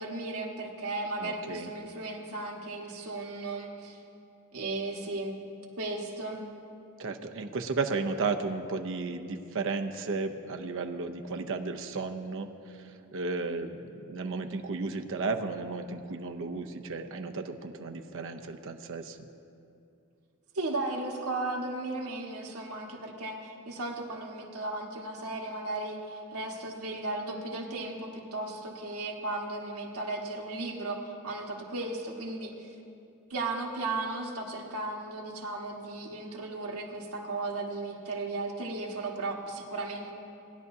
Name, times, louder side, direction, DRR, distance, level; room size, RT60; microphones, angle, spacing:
voice 1, 0.0-4.0 4.5-5.4 5.8-6.4 20.5-32.7 33.3-40.1, right 2 dB, 85° right, -1 dB, 1.5 m, -35 dB
voice 2, 1.2-1.7 7.0-19.2, right 4 dB, 65° right, 5 dB, 0.6 m, -34 dB
19.5 x 10.5 x 2.7 m, 2.6 s
head